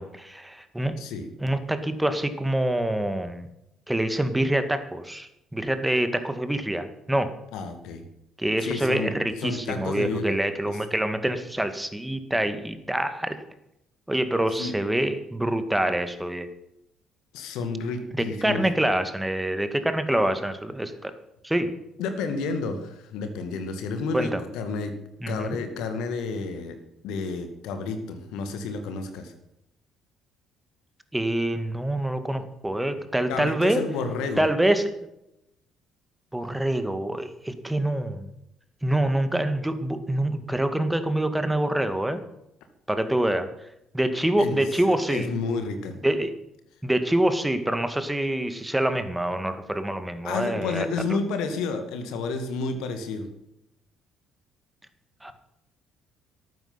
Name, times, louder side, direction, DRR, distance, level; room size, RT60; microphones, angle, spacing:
voice 1, 0.0-1.0 1.4-3.5 3.9-7.3 8.4-13.4 14.1-16.5 18.2-21.1 21.4-21.7 24.1-24.4 25.2-25.6 31.1-33.8 34.4-34.9 36.3-38.3 38.8-42.2 42.9-43.5 43.9-45.3 46.0-46.3 46.8-51.2 55.2-55.3, right 1 dB, 5° right, 10 dB, 2.0 m, -26 dB
voice 2, 1.0-1.3 7.5-8.1 8.6-10.4 10.7-10.8 14.6-14.8 17.3-18.6 22.0-24.9 25.3-26.8 27.0-29.3 33.3-34.4 44.4-46.0 50.2-53.3, left 4 dB, 60° left, 8 dB, 2.3 m, -31 dB
14.0 x 12.0 x 5.8 m, 0.83 s
figure-of-eight pair, 50°, 0 cm